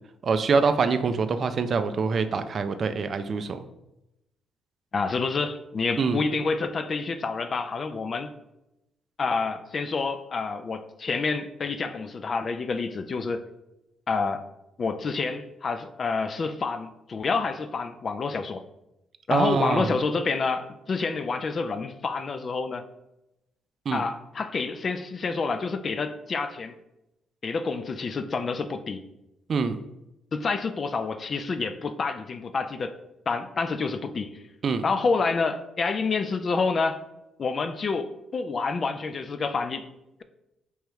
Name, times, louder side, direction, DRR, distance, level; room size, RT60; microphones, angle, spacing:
voice 1, 0.2-3.6 6.0-6.2 19.3-20.0 23.9-24.0 29.5-29.8 34.6-34.8, right 5 dB, 50° right, 10 dB, 0.3 m, -25 dB
voice 2, 4.9-8.3 9.2-13.4 14.1-14.5 14.8-18.6 19.3-22.9 23.9-26.7 27.4-29.0 30.3-32.9 33.3-34.3 34.8-37.0 37.4-39.9, left 4 dB, 45° left, 9 dB, 0.3 m, -28 dB
3.5 x 3.2 x 3.0 m, 0.89 s
cardioid pair, 90°, 0 cm